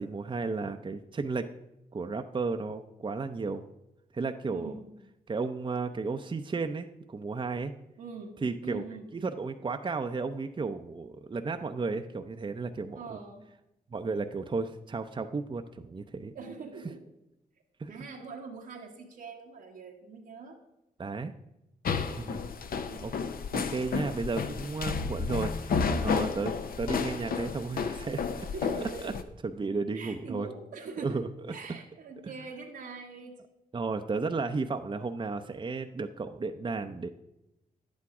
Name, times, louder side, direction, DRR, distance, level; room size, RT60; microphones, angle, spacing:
voice 1, 0.0-1.5 1.9-3.7 4.1-4.7 5.3-7.7 8.4-8.8 9.1-13.2 13.9-16.3 17.8-17.9 21.0-21.3 22.2-22.4 23.0-23.1 23.5-28.2 29.0-29.1 29.4-30.5 31.0-31.6 33.7-37.1, right 4 dB, 30° right, 6 dB, 0.6 m, -33 dB
voice 2, 4.5-4.9 8.0-9.1 12.9-13.5 16.3-17.0 17.9-20.6 22.8-23.1 28.5-29.1 29.9-31.2 31.5-33.4, right 4 dB, 85° right, -3 dB, 1.3 m, -43 dB
sound 1, 21.9-29.2, left 5 dB, 65° left, 0.8 m, -32 dB
10.5 x 8.5 x 4.8 m, 0.90 s
cardioid pair, 60°, 16 cm